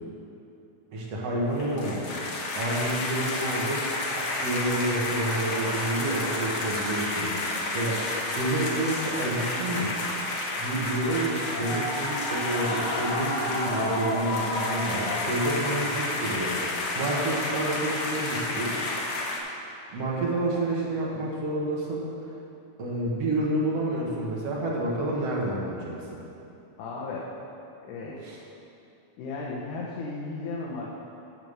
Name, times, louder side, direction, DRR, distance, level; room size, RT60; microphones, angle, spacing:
voice 1, 0.9-2.0 2.5-3.8 4.1-7.3 7.7-8.0 8.3-9.9 10.6-18.8 19.9-22.1 22.8-26.0 28.2-28.4, right 1 dB, 60° right, -4 dB, 2.4 m, -29 dB
sound 1, 1.5-19.4, left 2 dB, 60° left, 1.6 m, -30 dB
voice 2, 26.8-27.3 27.8-28.4 29.2-30.9, left 3 dB, 85° left, -4 dB, 2.5 m, -35 dB
9.3 x 7.1 x 6.5 m, 2.8 s
omnidirectional pair, 3.5 m